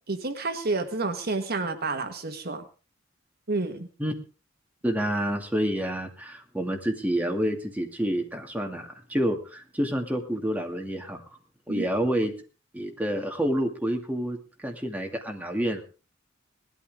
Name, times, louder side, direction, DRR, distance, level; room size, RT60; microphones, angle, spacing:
voice 1, 0.1-2.6 3.5-3.9 11.7-11.9, right 3 dB, 50° right, 7 dB, 1.6 m, -29 dB
voice 2, 4.8-11.2 11.7-12.3 12.7-15.9, equal, 10° right, 3 dB, 2.4 m, -28 dB
19.5 x 13.0 x 3.6 m, 0.35 s
head